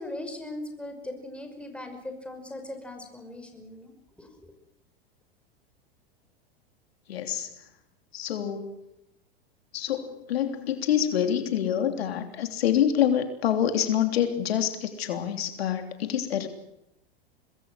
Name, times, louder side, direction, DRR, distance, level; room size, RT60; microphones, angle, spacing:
voice 1, 0.0-3.9 4.2-4.5, left 1 dB, 5° left, 5 dB, 5.7 m, -39 dB
voice 2, 7.1-7.5 8.1-8.7 9.7-16.5, left 9 dB, 80° left, 7 dB, 3.2 m, -26 dB
25.5 x 21.0 x 6.4 m, 0.85 s
hypercardioid pair, 105°, 30 cm